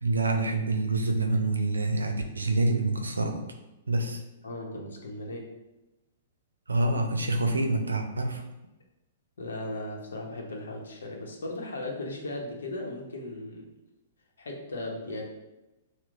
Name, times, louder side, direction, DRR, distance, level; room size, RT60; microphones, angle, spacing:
voice 1, 0.0-3.5 3.9-4.2 6.7-8.4, right 2 dB, 85° right, 4 dB, 0.5 m, -26 dB
voice 2, 4.4-5.5 9.4-13.7 14.4-15.2, left 2 dB, 75° left, 0 dB, 0.8 m, -37 dB
5.8 x 2.1 x 2.4 m, 1.0 s
hypercardioid pair, 115°, 0 cm